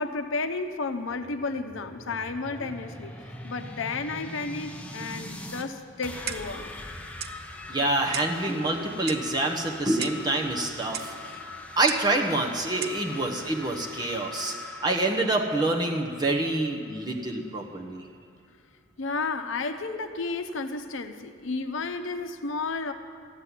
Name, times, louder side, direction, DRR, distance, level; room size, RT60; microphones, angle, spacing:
voice 1, 0.0-3.1 3.4-6.7 19.0-22.9, left 3 dB, 70° left, 7 dB, 0.8 m, -32 dB
sound 1, 1.0-5.7 6.0-17.6, left 2 dB, 5° left, 0.8 m, -42 dB
Clock, 6.3-6.6 7.2-7.4 8.1-8.4 9.1-9.3 10.0-10.3 10.9-11.1 11.9-12.1 12.8-13.0, right 9 dB, 50° right, 0.5 m, -36 dB
voice 2, 7.7-11.5 11.8-18.0, right 2 dB, 20° right, 0 dB, 1.1 m, -27 dB
14.0 x 7.7 x 9.9 m, 2.3 s
head